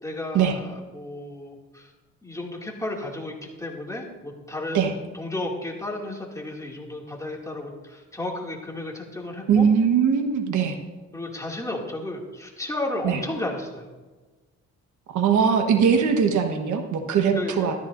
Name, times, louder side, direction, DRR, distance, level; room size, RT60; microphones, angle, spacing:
voice 1, 0.0-1.9 2.2-4.9 5.1-9.7 11.1-13.9 17.3-17.8, left 1 dB, 10° left, -1 dB, 2.4 m, -33 dB
voice 2, 9.5-10.8 13.0-13.2 15.1-17.8, right 7 dB, 75° right, 5 dB, 1.4 m, -21 dB
13.5 x 13.0 x 2.6 m, 1.2 s
cardioid pair, 90°, 30 cm